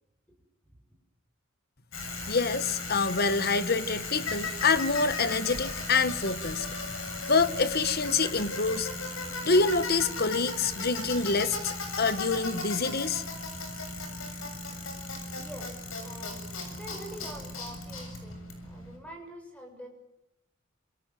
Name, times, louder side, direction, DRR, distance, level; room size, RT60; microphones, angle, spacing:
Bicycle, 1.9-19.0, left 2 dB, 90° left, 7.4 m, -36 dB
voice 1, 2.3-6.7 7.3-8.9 9.4-13.2, left 4 dB, 50° left, 13 dB, 1.2 m, -26 dB
voice 2, 15.4-19.9, equal, 5° left, 3 dB, 7.2 m, -46 dB
28.5 x 27.0 x 7.6 m, 0.91 s
head